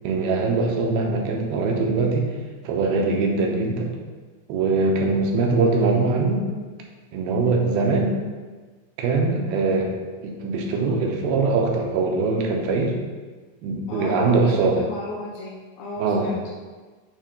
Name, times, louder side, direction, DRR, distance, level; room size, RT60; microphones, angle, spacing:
voice 1, 0.0-2.3 2.6-3.9 4.5-6.5 7.1-8.2 9.0-9.9 10.2-13.0 13.6-14.8 16.0-16.3, right 3 dB, 85° right, 0 dB, 2.7 m, -22 dB
voice 2, 13.9-16.5, left 2 dB, 75° left, -6 dB, 3.5 m, -35 dB
8.3 x 3.3 x 5.0 m, 1.4 s
omnidirectional pair, 4.4 m